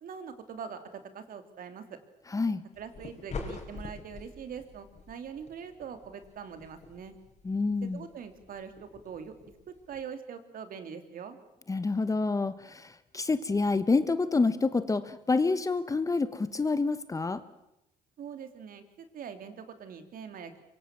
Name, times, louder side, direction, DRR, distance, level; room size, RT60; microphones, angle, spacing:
voice 1, 0.0-2.0 2.8-7.1 7.8-9.3 9.9-11.4 18.2-20.6, right 7 dB, 55° right, 9 dB, 2.9 m, -43 dB
voice 2, 2.3-2.6 7.4-8.0 11.7-17.4, left 3 dB, 20° left, 13 dB, 1.2 m, -28 dB
sound 1, 2.7-10.0, left 4 dB, 40° left, 5.4 m, -46 dB
25.0 x 23.5 x 7.5 m, 0.86 s
cardioid pair, 110°, 17 cm